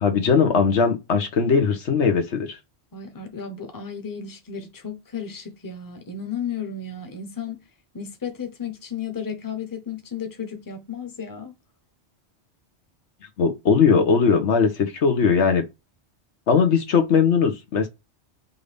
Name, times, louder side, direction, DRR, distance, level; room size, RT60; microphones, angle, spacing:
voice 1, 0.0-2.6 13.4-15.6 16.5-17.9, left 5 dB, 85° left, 1.3 m, -19 dB
voice 2, 2.9-7.6 7.9-11.5, left 6 dB, 20° left, 0.8 m, -33 dB
5.5 x 2.6 x 3.4 m
omnidirectional pair, 1.2 m